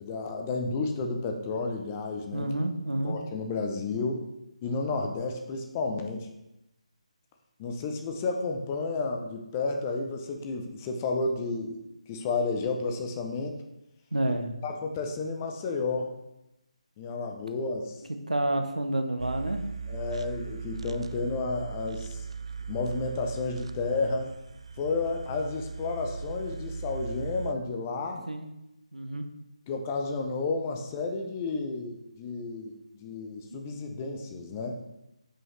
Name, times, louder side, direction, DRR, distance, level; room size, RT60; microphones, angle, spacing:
voice 1, 0.0-2.5 3.0-4.2 4.6-6.3 7.6-11.8 12.1-13.6 14.6-16.1 17.0-18.0 19.9-22.2 22.7-24.3 24.8-28.2 29.7-34.8, left 3 dB, 20° left, 3 dB, 0.5 m, -31 dB
voice 2, 2.3-3.2 14.1-14.5 18.3-19.6 28.3-28.5 28.9-29.2 33.5-33.6, right 1 dB, 85° right, 6 dB, 0.7 m, -29 dB
sound 1, 19.2-27.5, right 5 dB, 55° right, 0.3 m, -38 dB
5.5 x 5.5 x 3.1 m, 0.91 s
figure-of-eight pair, 150°, 4 cm